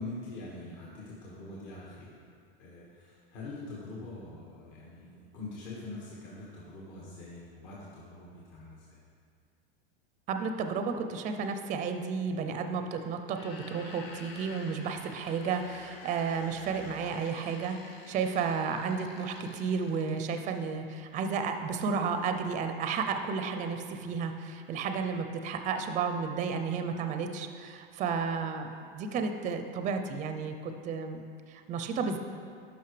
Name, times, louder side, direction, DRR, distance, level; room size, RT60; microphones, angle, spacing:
voice 1, 0.0-2.2 2.6-9.0, left 2 dB, 55° left, -6 dB, 1.8 m, -44 dB
voice 2, 10.3-32.2, right 5 dB, 25° right, 7 dB, 0.5 m, -32 dB
sound 1, 13.2-20.5, left 3 dB, 75° left, 1.0 m, -49 dB
12.0 x 5.4 x 3.3 m, 2.3 s
hypercardioid pair, 110°, 30 cm